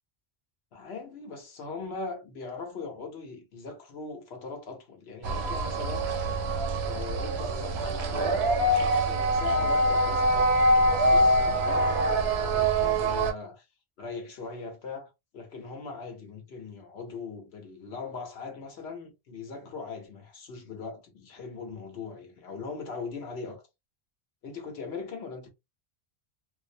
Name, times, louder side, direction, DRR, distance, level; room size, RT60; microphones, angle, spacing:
voice 1, 0.7-6.1 6.8-13.7 14.0-23.6 24.4-25.5, left 4 dB, 90° left, 1.1 m, -40 dB
sound 1, 5.2-13.3, right 1 dB, 85° right, 0.9 m, -24 dB
2.6 x 2.0 x 2.6 m
omnidirectional pair, 1.0 m